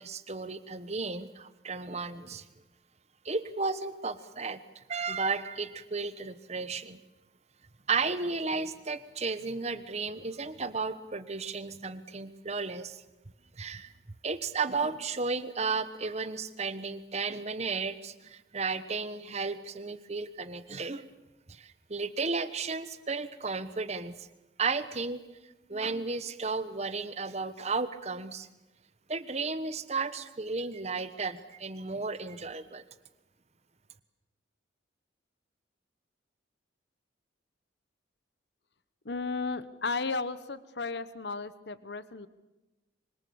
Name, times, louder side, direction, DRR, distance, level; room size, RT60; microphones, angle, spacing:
voice 1, 0.0-2.5 3.2-7.0 7.9-13.0 13.5-13.9 14.2-21.1 21.5-24.3 24.6-25.2 25.7-28.5 29.1-32.8, right 4 dB, 35° right, 13 dB, 1.2 m, -34 dB
voice 2, 39.0-42.3, left 4 dB, 60° left, 14 dB, 1.2 m, -34 dB
25.5 x 25.0 x 7.1 m, 1.0 s
head